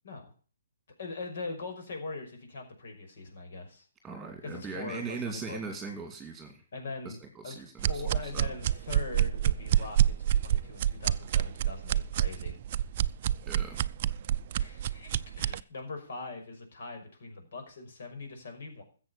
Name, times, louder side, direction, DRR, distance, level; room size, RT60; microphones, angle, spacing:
voice 1, 1.0-3.9 4.4-5.6 6.7-7.2 7.4-12.5 14.5-18.8, left 3 dB, 60° left, 4 dB, 5.8 m, -41 dB
voice 2, 4.0-6.6 7.0-8.5 13.4-13.8, right 4 dB, 10° right, 4 dB, 2.4 m, -40 dB
sound 1, 7.8-15.6, right 11 dB, 40° right, 0.5 m, -27 dB
14.0 x 7.9 x 7.2 m, 0.40 s
hypercardioid pair, 145°, 0 cm